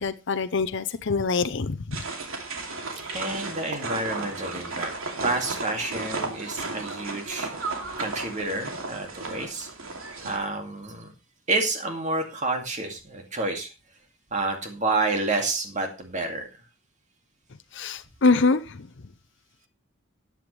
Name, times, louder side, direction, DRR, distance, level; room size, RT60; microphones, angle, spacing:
voice 1, 0.0-2.1 17.7-18.9, left 4 dB, 60° left, 0.7 m, -24 dB
sound 1, 1.9-10.4, right 3 dB, 85° right, 2.6 m, -34 dB
voice 2, 3.1-4.9 5.2-7.5 8.0-9.7 10.2-11.1 11.5-13.7 14.3-16.5, right 2 dB, 35° right, 2.2 m, -29 dB
13.0 x 9.3 x 3.2 m
head